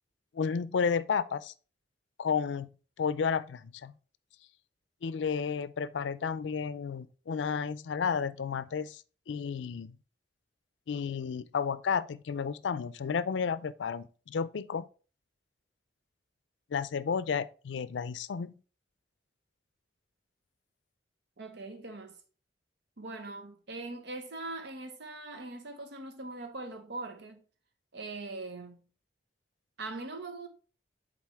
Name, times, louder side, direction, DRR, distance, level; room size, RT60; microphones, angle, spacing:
voice 1, 0.3-1.5 2.2-2.7 3.0-3.9 5.0-10.0 10.9-14.9 16.7-18.5, left 6 dB, 85° left, 0.4 m, -32 dB
voice 2, 21.4-22.2 23.0-27.4 27.9-28.8 29.8-30.5, right 2 dB, 65° right, 0.9 m, -41 dB
7.4 x 4.1 x 3.5 m
head